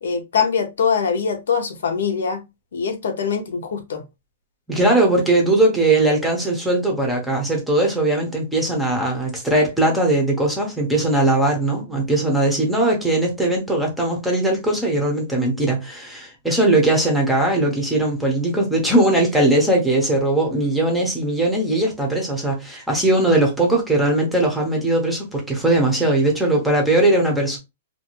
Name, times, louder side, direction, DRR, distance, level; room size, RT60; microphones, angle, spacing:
voice 1, 0.0-2.4 2.7-4.0, left 6 dB, 85° left, 0.7 m, -23 dB
voice 2, 4.7-27.6, right 2 dB, ahead, 0.6 m, -19 dB
2.5 x 2.2 x 2.8 m
hypercardioid pair, 170°, 0 cm